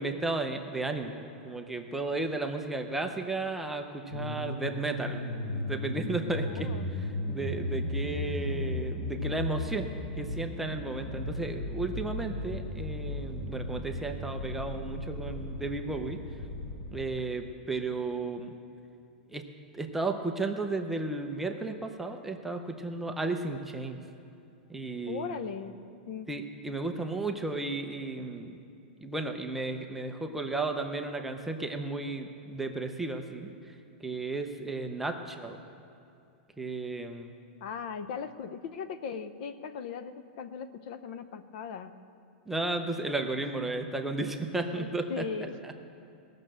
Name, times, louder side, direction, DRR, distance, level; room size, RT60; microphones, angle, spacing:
voice 1, 0.0-9.9 10.2-16.2 16.9-18.5 19.3-19.4 19.7-24.0 24.7-25.3 26.3-28.5 29.0-35.6 36.6-37.3 42.5-45.2 45.6-45.7, right 3 dB, 5° right, 4 dB, 0.6 m, -34 dB
sound 1, 4.1-17.0, left 2 dB, 90° left, 3.8 m, -35 dB
voice 2, 6.4-6.9 25.1-25.8 26.1-26.3 37.6-41.9 44.7-45.6, left 6 dB, 55° left, 11 dB, 0.7 m, -38 dB
18.5 x 6.6 x 7.5 m, 2.6 s
supercardioid pair, 165°, 6 cm